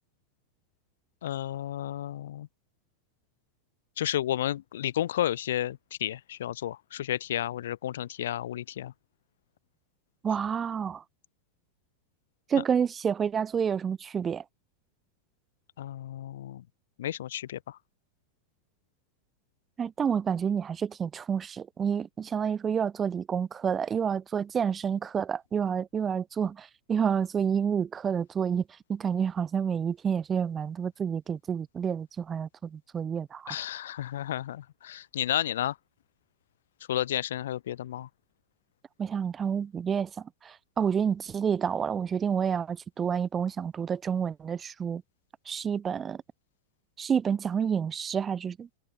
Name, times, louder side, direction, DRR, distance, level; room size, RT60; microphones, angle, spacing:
voice 1, 1.2-2.5 4.0-8.9 12.5-12.6 15.8-16.6 17.0-17.8 33.5-35.8 36.9-38.1, left 12 dB, 60° left, 5.2 m, -32 dB
voice 2, 10.2-11.0 12.5-14.4 19.8-28.6 28.9-33.6 39.0-45.0 45.5-46.2 47.0-48.7, right 7 dB, 20° right, 5.4 m, -29 dB
figure-of-eight pair, 90°, 0 cm